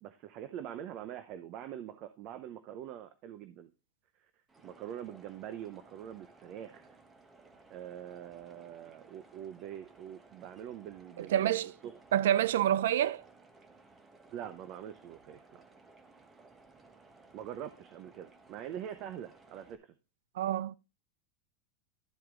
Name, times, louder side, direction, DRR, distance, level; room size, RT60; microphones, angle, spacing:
voice 1, 0.0-3.7 4.6-6.8 7.7-11.9 14.3-15.6 17.3-19.9, right 10 dB, 45° right, 0.7 m, -44 dB
sound 1, 4.5-19.8, right 3 dB, 15° right, 1.1 m, -59 dB
voice 2, 11.2-11.7 12.1-13.2 20.4-20.7, right 11 dB, 85° right, 0.4 m, -27 dB
12.0 x 4.6 x 3.7 m
supercardioid pair, 140°, 0 cm